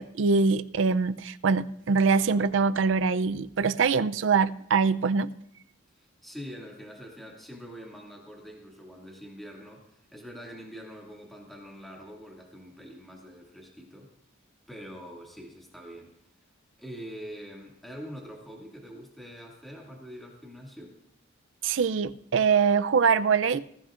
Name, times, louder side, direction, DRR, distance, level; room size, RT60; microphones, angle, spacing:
voice 1, 0.0-5.3 21.6-23.6, right 5 dB, 70° right, 13 dB, 0.5 m, -23 dB
voice 2, 6.0-14.1 14.7-16.1 16.8-21.0, equal, ahead, -3 dB, 2.2 m, -44 dB
20.5 x 15.0 x 2.5 m, 0.76 s
head